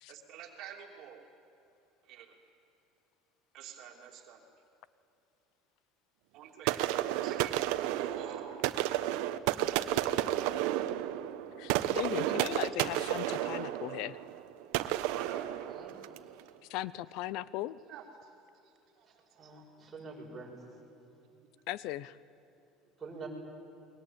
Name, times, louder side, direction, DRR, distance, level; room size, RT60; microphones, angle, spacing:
voice 1, 0.1-1.2 2.1-2.3 3.5-4.4 6.3-6.9 7.2-8.5 12.4-12.5 13.4-13.5 15.0-15.5 17.9-18.0 19.5-19.6, right 9 dB, 55° right, 2 dB, 3.1 m, -47 dB
sound 1, 6.7-16.3, right 14 dB, 75° right, 1.1 m, -32 dB
voice 2, 11.6-14.2 16.7-17.8 21.7-22.2, left 15 dB, 65° left, 19 dB, 0.6 m, -37 dB
voice 3, 19.4-20.6 23.0-23.3, right 4 dB, 15° right, -2 dB, 6.6 m, -46 dB
29.5 x 22.5 x 8.9 m, 2.9 s
cardioid pair, 145°, 0 cm